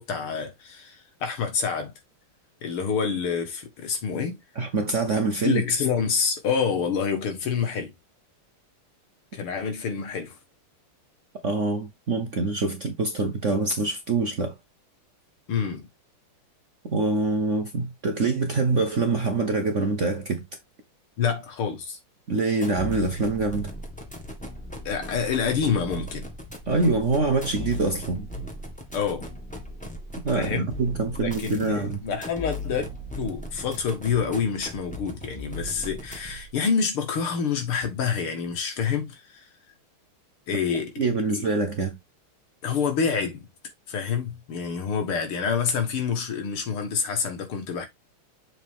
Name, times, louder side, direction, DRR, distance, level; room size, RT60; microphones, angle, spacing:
voice 1, 0.0-1.9 2.6-4.4 5.4-7.9 9.3-10.4 15.5-15.9 21.2-22.0 24.9-26.3 28.9-29.2 30.3-30.7 31.2-32.9 33.1-39.4 40.5-41.0 41.3-41.4 42.6-43.5 43.9-47.9, left 6 dB, 75° left, 2.6 m, -27 dB
voice 2, 4.6-5.6 11.4-14.6 16.8-20.4 22.3-23.7 26.7-28.3 30.2-32.0 41.0-42.0, right 3 dB, 50° right, 1.0 m, -25 dB
sound 1, 22.5-36.5, left 1 dB, 5° left, 1.6 m, -37 dB
7.2 x 4.1 x 3.6 m
omnidirectional pair, 2.4 m